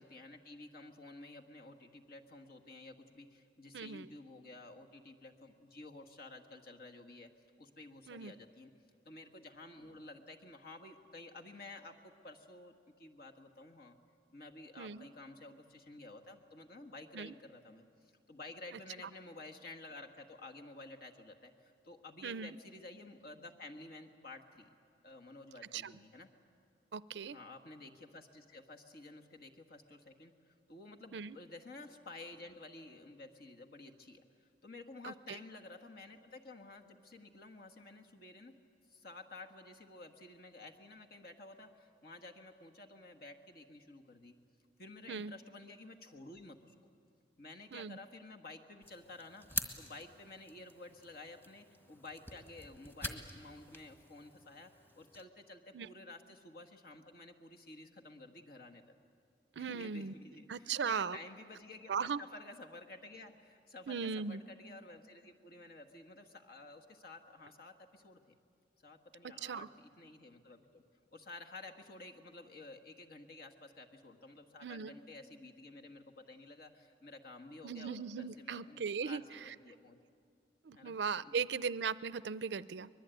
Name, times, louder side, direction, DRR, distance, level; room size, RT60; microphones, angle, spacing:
voice 1, 0.0-7.3 7.6-8.7 9.0-14.0 14.3-24.7 25.0-26.3 27.3-38.5 38.9-44.3 44.8-46.9 47.4-58.8 59.6-68.4 68.8-70.8 71.1-80.0 80.7-81.4, left 2 dB, 60° left, 3 dB, 1.7 m, -52 dB
voice 2, 3.7-4.1 8.1-8.3 14.8-15.1 17.1-17.3 22.2-22.5 25.7-25.9 26.9-27.4 31.1-31.4 35.0-35.1 45.1-45.3 47.7-48.0 55.7-55.9 59.6-60.1 60.5-61.2 61.9-62.2 63.9-64.4 69.4-69.7 74.6-74.9 77.6-79.2 80.7-82.9, right 6 dB, 75° right, 17 dB, 0.5 m, -38 dB
sound 1, 48.8-55.2, left 1 dB, 15° left, 1.5 m, -46 dB
24.0 x 21.0 x 9.2 m, 2.3 s
head